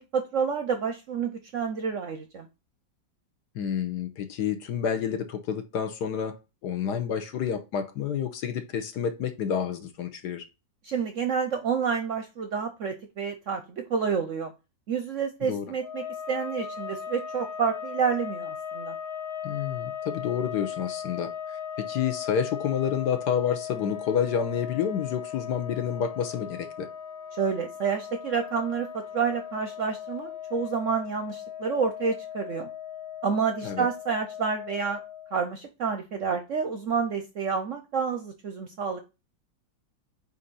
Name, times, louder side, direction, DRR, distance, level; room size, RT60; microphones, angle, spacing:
voice 1, 0.0-2.5 10.8-14.5 14.9-18.9 27.3-32.7 33.2-35.0 35.3-39.0, right 6 dB, 65° right, 0.8 m, -29 dB
voice 2, 3.5-6.4 6.6-10.4 15.4-15.7 19.4-26.9 33.6-33.9, left 8 dB, 70° left, 1.4 m, -29 dB
sound 1, 15.8-35.4, left 8 dB, 50° left, 1.8 m, -38 dB
8.2 x 2.8 x 4.0 m
omnidirectional pair, 1.9 m